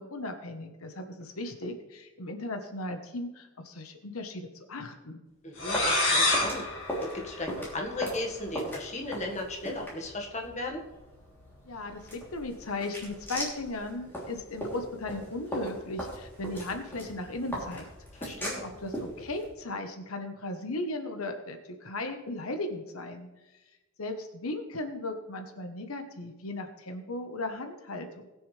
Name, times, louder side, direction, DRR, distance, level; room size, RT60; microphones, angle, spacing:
voice 1, 0.0-5.2 11.6-17.9 18.6-23.3 24.0-28.3, left 2 dB, 85° left, 6 dB, 1.2 m, -37 dB
voice 2, 5.4-6.7 7.0-10.8 18.1-18.6, left 2 dB, 35° left, 1 dB, 1.7 m, -36 dB
sound 1, 5.6-8.2, left 2 dB, 65° left, 3.3 m, -28 dB
sound 2, 5.6-19.5, equal, 10° left, 3.1 m, -39 dB
19.5 x 6.9 x 3.4 m, 1.1 s
head